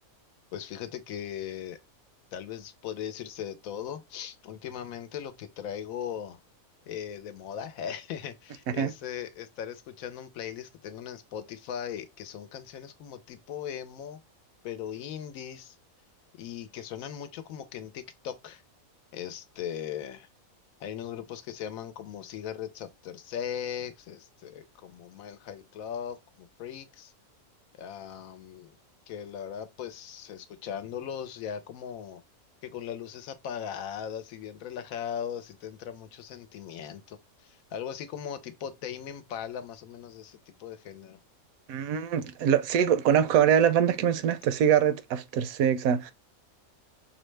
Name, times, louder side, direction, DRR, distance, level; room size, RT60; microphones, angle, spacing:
voice 1, 0.5-1.8 2.3-6.4 6.9-14.2 14.6-15.8 16.4-18.6 19.1-20.3 20.8-27.1 27.7-28.7 29.1-32.2 32.6-41.2, left 9 dB, 80° left, 1.0 m, -39 dB
voice 2, 41.7-46.1, right 9 dB, 80° right, 1.0 m, -24 dB
5.5 x 2.1 x 3.1 m
omnidirectional pair, 1.5 m